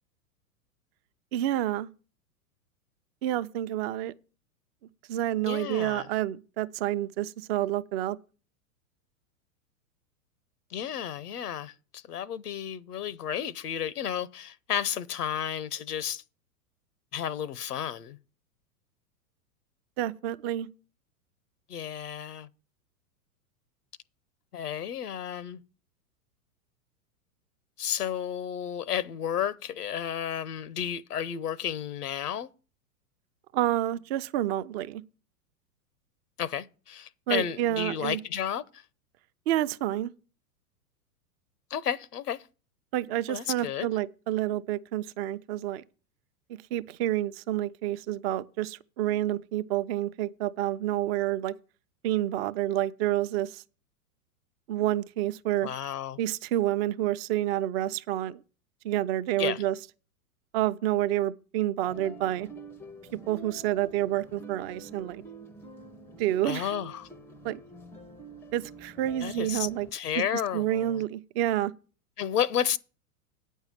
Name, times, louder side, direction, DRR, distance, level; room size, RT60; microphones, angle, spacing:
voice 1, 1.3-1.9 3.2-4.1 5.1-8.2 20.0-20.7 33.5-35.0 37.3-38.2 39.5-40.1 42.9-45.8 46.7-51.5 52.0-53.6 54.7-55.7 56.2-58.4 58.8-59.8 60.5-62.5 63.3-65.2 66.2-66.7 67.4-67.6 68.5-69.9 70.3-71.7, right 13 dB, 45° right, 0.6 m, -29 dB
voice 2, 5.5-6.1 10.7-16.2 17.1-18.2 21.7-22.5 24.5-25.6 27.8-32.5 36.4-38.8 41.7-42.5 43.3-43.9 55.6-56.2 59.4-59.6 66.4-67.1 69.2-71.0 72.2-72.8, left 9 dB, 85° left, 0.7 m, -32 dB
sound 1, 61.8-69.9, right 2 dB, 5° left, 0.5 m, -47 dB
9.0 x 5.5 x 7.5 m
hypercardioid pair, 110°, 46 cm